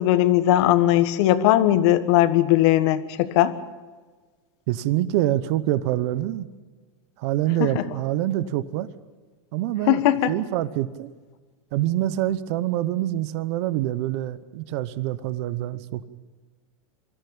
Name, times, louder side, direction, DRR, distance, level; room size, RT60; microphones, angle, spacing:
voice 1, 0.0-3.5 9.9-10.3, left 13 dB, 60° left, 12 dB, 1.5 m, -19 dB
voice 2, 4.7-6.5 7.2-8.9 9.5-11.1 11.7-16.0, right 14 dB, 60° right, 16 dB, 1.0 m, -25 dB
24.0 x 13.5 x 8.8 m, 1.4 s
supercardioid pair, 125°, 16 cm